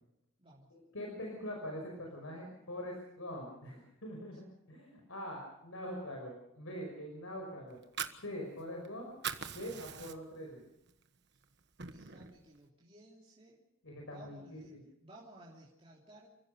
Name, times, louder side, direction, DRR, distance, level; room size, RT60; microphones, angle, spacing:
voice 1, 0.4-0.7 11.3-11.4 11.8-13.6 14.0-14.7 15.0-16.3, right 1 dB, 25° right, -5 dB, 3.3 m, -57 dB
voice 2, 0.9-7.8 8.2-9.1 9.6-10.6 13.8-14.8, equal, 90° left, 1 dB, 5.5 m, -43 dB
Fire, 7.7-8.9 9.1-10.5 10.9-11.0 11.4-12.4, right 7 dB, 55° right, 1.4 m, -41 dB
29.5 x 15.5 x 6.7 m, 0.85 s
head